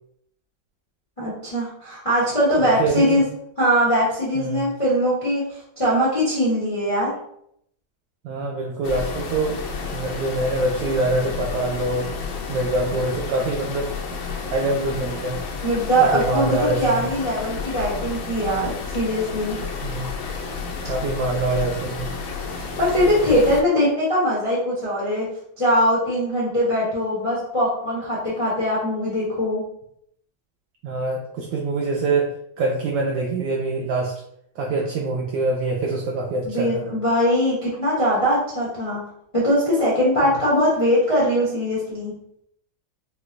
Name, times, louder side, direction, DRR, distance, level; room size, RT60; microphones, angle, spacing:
voice 1, 1.2-3.2 3.6-7.1 15.6-19.6 22.5-25.3 25.6-29.6 36.4-39.0 39.3-42.1, equal, 45° left, -7 dB, 0.4 m, -21 dB
voice 2, 2.6-3.3 4.3-4.7 8.2-9.6 9.9-12.1 12.5-13.9 14.5-15.4 16.0-17.0 19.8-20.3 20.9-22.1 30.8-34.1 34.6-36.8, right 2 dB, 75° right, -1 dB, 1.2 m, -25 dB
sound 1, 8.8-23.6, left 4 dB, 80° left, 1.3 m, -31 dB
4.7 x 2.2 x 2.5 m, 0.72 s
omnidirectional pair, 2.2 m